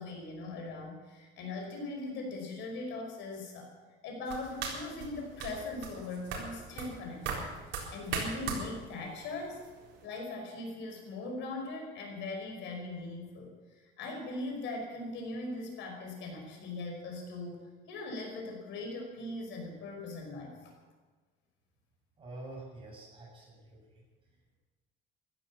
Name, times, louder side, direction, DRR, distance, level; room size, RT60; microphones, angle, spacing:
voice 1, 0.0-3.7 4.0-7.5 7.9-9.6 10.0-13.5 14.0-20.7, left 2 dB, 70° left, 2 dB, 5.3 m, -40 dB
sound 1, 4.3-10.1, right 5 dB, 70° right, 4.2 m, -40 dB
voice 2, 22.2-24.0, right 2 dB, 25° right, -3 dB, 7.3 m, -47 dB
15.5 x 12.5 x 7.4 m, 1.3 s
cardioid pair, 155°, 20 cm